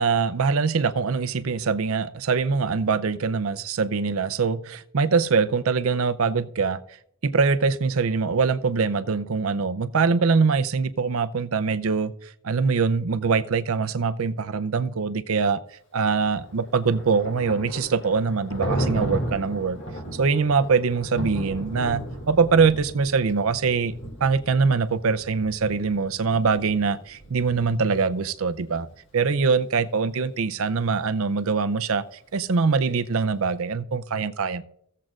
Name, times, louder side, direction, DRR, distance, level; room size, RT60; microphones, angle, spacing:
voice 1, 0.0-6.8 7.2-15.6 15.9-19.8 20.1-23.9 24.2-28.9 29.1-32.0 32.3-34.6, right 5 dB, 75° right, 0.6 m, -23 dB
Thunder, 16.4-28.2, equal, 60° left, 2.3 m, -34 dB
16.5 x 7.5 x 2.5 m
head